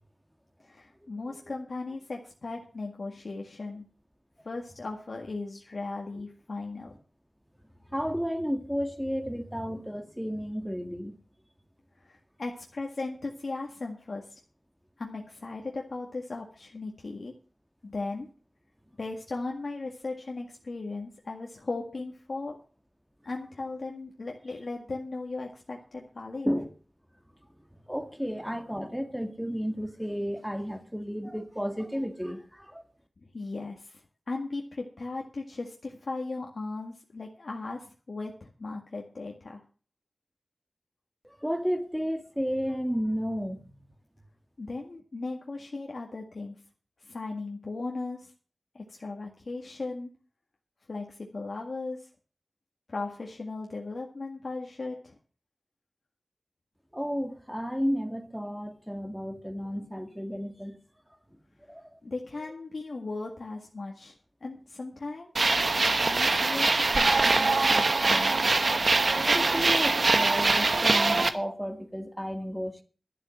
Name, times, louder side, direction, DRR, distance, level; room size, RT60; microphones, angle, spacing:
voice 1, 0.6-3.8 4.4-6.9 12.0-14.4 15.0-17.3 17.8-18.3 19.0-22.6 23.2-26.5 33.2-39.6 44.6-46.6 47.0-48.3 48.7-50.1 50.9-52.1 52.9-55.1 62.0-64.1 64.4-65.5 66.0-68.3, left 3 dB, 75° left, 1.8 m, -37 dB
voice 2, 7.9-11.2 26.4-26.7 27.9-32.8 41.2-43.6 56.9-60.8 61.7-62.0 67.5-67.6 69.1-72.8, equal, ahead, 1.9 m, -32 dB
sound 1, 65.4-71.3, right 3 dB, 70° right, 1.1 m, -23 dB
12.5 x 7.4 x 7.6 m
wide cardioid pair, 65°, 0 cm